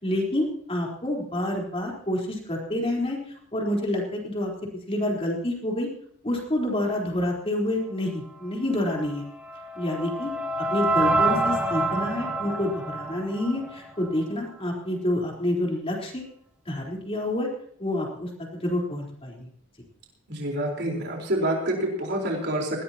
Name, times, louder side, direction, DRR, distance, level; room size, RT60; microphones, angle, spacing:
voice 1, 0.0-3.2 3.5-4.5 4.9-5.9 6.2-9.2 9.8-10.3 10.7-16.2 16.7-17.5 17.8-19.4, left 1 dB, 25° left, -1 dB, 4.1 m, -28 dB
sound 1, 9.0-14.2, right 2 dB, 5° right, 1.9 m, -27 dB
voice 2, 20.3-22.8, right 1 dB, 50° right, -1 dB, 4.4 m, -27 dB
20.5 x 16.0 x 3.0 m, 0.65 s
head